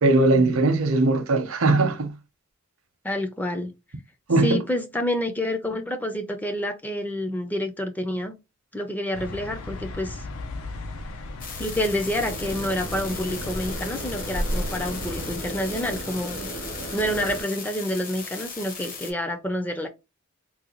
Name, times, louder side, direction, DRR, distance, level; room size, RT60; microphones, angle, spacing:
voice 1, 0.0-2.1 4.3-4.6, right 2 dB, 75° right, 0.7 m, -20 dB
voice 2, 3.0-3.7 4.4-8.3 8.7-10.2 11.6-16.5 16.9-19.9, left 1 dB, 10° left, 0.4 m, -28 dB
sound 1, 9.1-15.4, left 1 dB, 80° left, 0.6 m, -34 dB
sound 2, 11.4-19.1, left 5 dB, 40° left, 0.9 m, -38 dB
Water, 12.1-17.4, right 2 dB, 65° left, 1.2 m, -36 dB
3.7 x 2.2 x 2.9 m
head